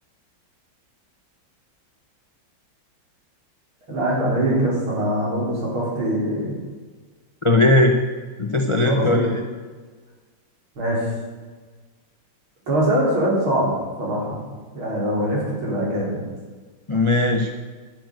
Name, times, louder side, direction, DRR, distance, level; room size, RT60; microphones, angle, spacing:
voice 1, 3.9-6.6 8.8-9.3 10.8-11.1 12.7-14.4 14.7-16.2, right 1 dB, 75° right, -4 dB, 4.8 m, -23 dB
voice 2, 7.4-7.9 8.4-9.4 16.9-17.5, left 2 dB, 30° left, 3 dB, 0.5 m, -18 dB
10.5 x 9.3 x 7.9 m, 1.4 s
omnidirectional pair, 2.3 m